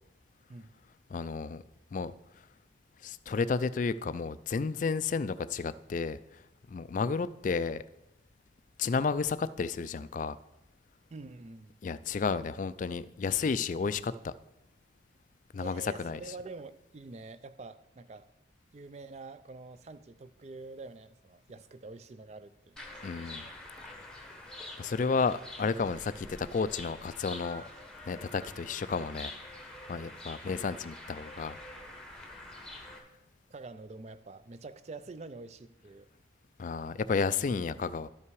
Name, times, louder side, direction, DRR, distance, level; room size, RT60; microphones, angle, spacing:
voice 1, 1.1-1.6 1.9-2.1 3.0-6.2 6.7-7.8 8.8-10.4 11.8-14.3 15.5-16.2 23.0-23.4 24.8-27.6 28.1-29.3 29.9-31.6 36.6-38.1, left 5 dB, 40° left, 0.3 m, -32 dB
voice 2, 11.1-11.8 15.6-18.3 18.7-22.8 30.4-30.6 33.5-36.1, right 3 dB, 35° right, 0.4 m, -46 dB
sound 1, 22.8-33.0, left 1 dB, 5° left, 1.0 m, -46 dB
12.0 x 5.7 x 4.7 m
head